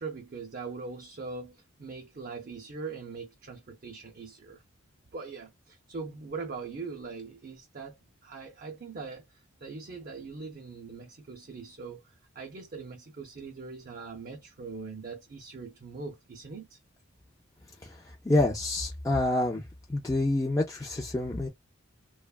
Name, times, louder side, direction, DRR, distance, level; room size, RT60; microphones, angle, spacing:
voice 1, 0.0-4.6 5.1-8.0 8.2-16.8, right 4 dB, 45° right, 0.5 m, -41 dB
voice 2, 18.3-19.6 19.9-21.5, left 2 dB, 15° left, 0.4 m, -27 dB
3.0 x 2.1 x 2.3 m
head